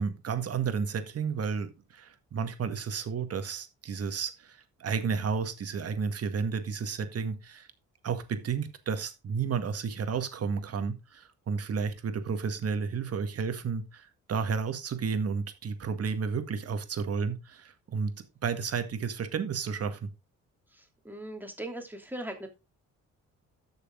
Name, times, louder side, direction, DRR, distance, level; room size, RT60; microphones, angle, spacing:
voice 1, 0.0-7.7 8.0-18.1 18.4-20.1, right 5 dB, 50° right, 8 dB, 1.9 m, -32 dB
voice 2, 21.0-22.5, right 1 dB, 5° right, 4 dB, 2.9 m, -39 dB
12.0 x 6.7 x 3.8 m, 0.26 s
cardioid pair, 90°, 30 cm